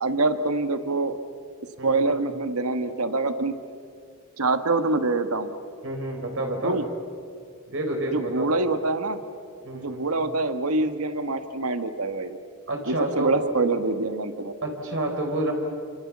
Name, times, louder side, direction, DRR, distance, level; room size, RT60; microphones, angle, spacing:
voice 1, 0.0-1.2 1.8-3.5 4.4-5.5 6.6-6.8 8.1-9.2 9.8-12.4 12.9-14.5, right 3 dB, 85° right, 9 dB, 1.5 m, -25 dB
voice 2, 5.8-6.8 7.7-8.4 9.6-10.0 12.7-13.4 14.6-15.5, right 1 dB, 60° right, 2 dB, 4.2 m, -29 dB
28.5 x 27.0 x 7.4 m, 2.4 s
head